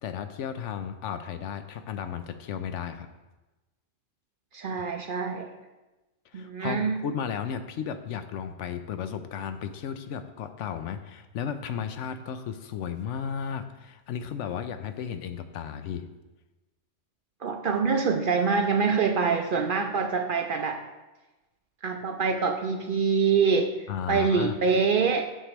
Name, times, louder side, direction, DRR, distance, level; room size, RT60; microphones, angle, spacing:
voice 1, 0.0-3.1 4.8-4.9 6.3-16.1 23.9-24.5, left 8 dB, 80° left, 9 dB, 0.9 m, -34 dB
voice 2, 4.5-5.5 6.3-7.0 17.4-20.8 21.8-25.3, right 5 dB, 60° right, 4 dB, 0.6 m, -25 dB
9.9 x 6.6 x 3.0 m, 1.1 s
omnidirectional pair, 1.3 m